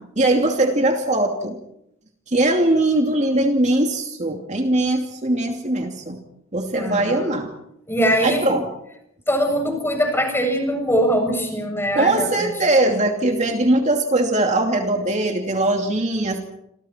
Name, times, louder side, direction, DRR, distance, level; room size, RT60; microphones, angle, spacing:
voice 1, 0.2-1.6 2.3-6.2 6.5-7.5 8.2-8.7 11.9-16.4, right 1 dB, 35° right, 3 dB, 2.8 m, -20 dB
voice 2, 6.7-7.3 7.9-8.5 9.3-12.5, equal, 10° left, 3 dB, 7.5 m, -22 dB
29.5 x 27.5 x 4.5 m, 0.80 s
head